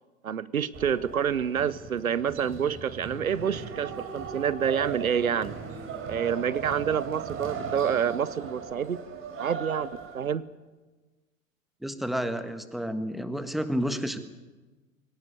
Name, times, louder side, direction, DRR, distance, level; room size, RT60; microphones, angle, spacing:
voice 1, 0.2-5.5 6.1-9.0 9.4-10.5, right 8 dB, 85° right, 19 dB, 0.8 m, -28 dB
sound 1, 0.7-10.3, right 6 dB, 30° right, 4.2 m, -38 dB
voice 2, 11.8-14.2, equal, ahead, 10 dB, 1.5 m, -30 dB
22.5 x 18.0 x 9.5 m, 1.3 s
figure-of-eight pair, 90°, 41 cm